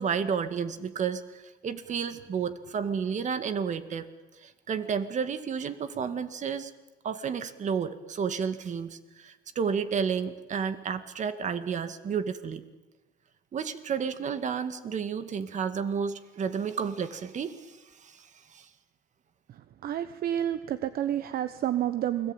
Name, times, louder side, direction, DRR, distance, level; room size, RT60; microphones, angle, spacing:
voice 1, 0.0-4.1 4.4-6.7 7.0-12.6 13.5-18.7, right 6 dB, 45° right, 11 dB, 2.1 m, -31 dB
voice 2, 19.5-22.3, right 11 dB, 60° right, 12 dB, 1.1 m, -30 dB
29.0 x 21.5 x 9.1 m, 1.1 s
cardioid pair, 110°, 17 cm